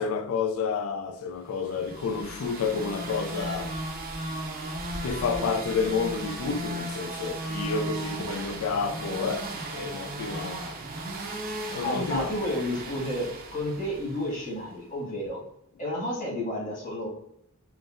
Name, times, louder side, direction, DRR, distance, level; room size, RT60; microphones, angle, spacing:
voice 1, 0.0-3.7 5.0-10.8 11.7-12.3, left 5 dB, 70° left, 0.4 m, -30 dB
sound 1, 1.6-14.5, right 2 dB, 45° right, 0.5 m, -36 dB
voice 2, 11.8-15.4 15.8-17.1, left 1 dB, 40° left, 1.4 m, -31 dB
3.8 x 2.0 x 2.5 m
head